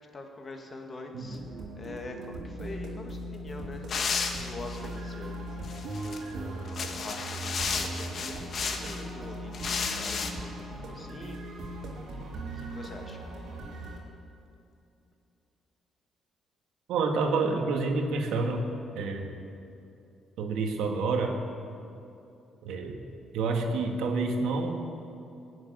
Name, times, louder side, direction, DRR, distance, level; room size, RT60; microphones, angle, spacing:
voice 1, 0.1-5.4 6.0-11.4 12.5-13.2, left 2 dB, 35° left, 3 dB, 2.2 m, -44 dB
sound 1, 1.3-14.0, right 1 dB, 70° right, 3.4 m, -39 dB
sound 2, 3.9-4.9 5.6-6.2 6.7-9.0 9.5-10.3, left 5 dB, 55° left, 1.5 m, -33 dB
voice 2, 16.9-18.7 18.9-19.3 20.4-21.3 22.6-23.0 23.3-24.8, right 3 dB, 85° right, 3 dB, 1.8 m, -28 dB
16.5 x 7.4 x 10.0 m, 2.7 s
cardioid pair, 90°, 0 cm